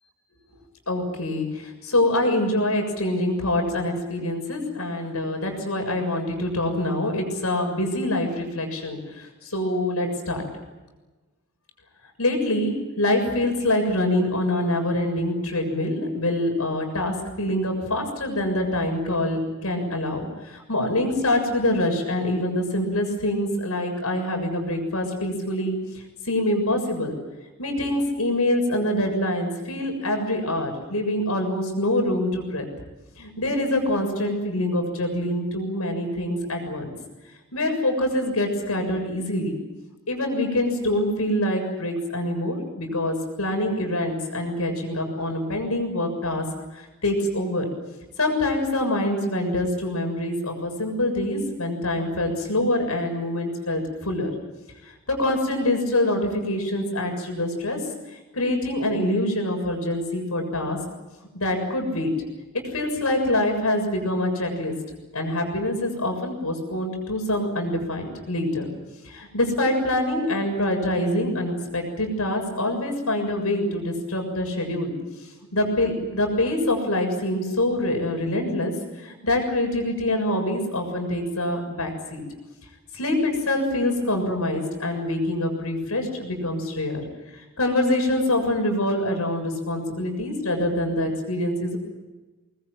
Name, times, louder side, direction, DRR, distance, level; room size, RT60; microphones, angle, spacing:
voice 1, 0.9-10.4 12.2-25.8 26.2-27.1 27.6-32.6 33.2-36.9 37.5-39.6 40.1-46.4 46.7-47.7 48.2-54.3 55.1-57.8 58.3-60.8 61.3-62.1 62.7-64.7 65.1-68.7 69.0-74.9 75.5-78.7 79.0-82.2 82.9-87.0 87.3-91.8, left 1 dB, 80° left, 4 dB, 7.1 m, -25 dB
24.5 x 21.0 x 9.3 m, 1.2 s
head